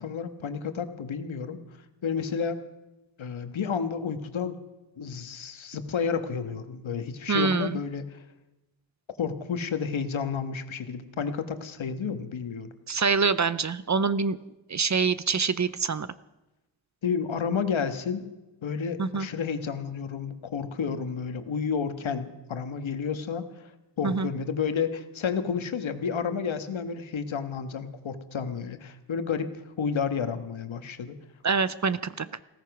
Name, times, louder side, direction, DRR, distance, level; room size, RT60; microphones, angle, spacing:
voice 1, 0.0-1.6 2.0-2.6 3.2-4.5 5.0-8.2 9.2-12.7 17.0-18.3 18.6-23.7 24.0-31.2, left 6 dB, 75° left, 9 dB, 1.6 m, -31 dB
voice 2, 7.3-7.8 12.9-14.4 14.7-16.1 19.0-19.3 24.0-24.3 31.4-32.3, right 5 dB, 35° right, 16 dB, 0.6 m, -25 dB
16.5 x 14.5 x 6.0 m, 0.99 s
wide cardioid pair, 140°, 47 cm